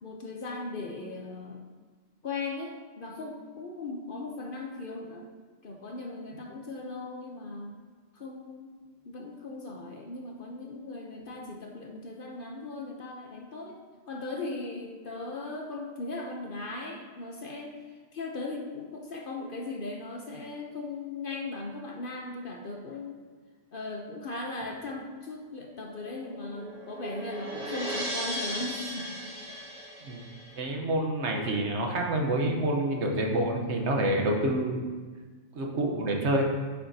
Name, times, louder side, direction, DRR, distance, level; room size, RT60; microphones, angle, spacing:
voice 1, 0.0-1.6 2.2-5.3 5.6-7.8 8.1-8.7 9.0-13.8 14.1-17.8 18.1-23.2 23.7-29.1 29.5-29.7, left 3 dB, 50° left, 2 dB, 0.8 m, -38 dB
sound 1, 25.7-30.6, equal, 85° right, 1.7 m, -37 dB
voice 2, 30.6-34.8 35.5-36.4, right 1 dB, 60° right, 1 dB, 1.2 m, -27 dB
9.3 x 6.9 x 2.7 m, 1.4 s
omnidirectional pair, 1.3 m